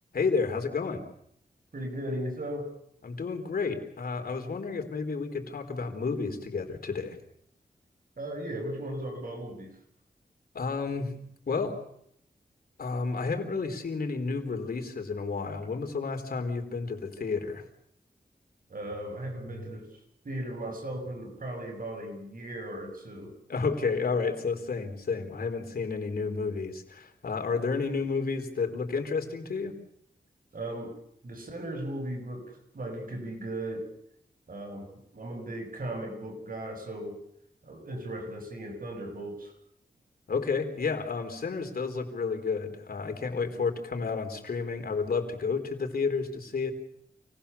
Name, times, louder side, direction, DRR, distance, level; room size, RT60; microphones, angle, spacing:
voice 1, 0.1-1.0 3.0-7.2 10.5-11.1 11.5-11.8 12.8-17.6 23.5-29.7 40.3-46.7, left 4 dB, 70° left, 5 dB, 4.1 m, -31 dB
voice 2, 1.7-2.8 8.2-9.8 18.7-20.0 20.2-23.3 30.5-31.0 31.2-33.9 34.5-37.2 37.6-39.5, right 1 dB, 60° right, 3 dB, 8.0 m, -37 dB
29.0 x 19.0 x 7.1 m, 0.73 s
cardioid pair, 60°, 16 cm